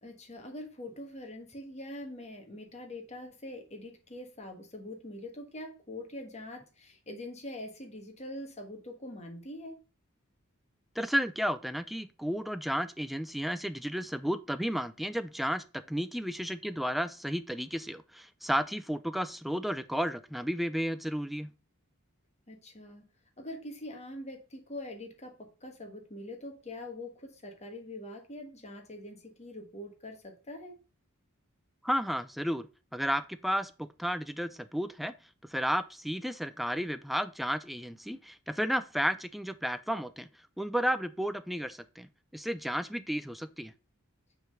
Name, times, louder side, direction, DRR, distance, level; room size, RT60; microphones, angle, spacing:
voice 1, 0.0-9.8 22.5-23.1 23.4-30.8, left 1 dB, 30° left, 1.5 m, -44 dB
voice 2, 11.0-21.5 31.8-35.1 35.5-40.3 40.6-43.7, equal, ahead, 0.4 m, -33 dB
5.8 x 3.8 x 5.6 m
head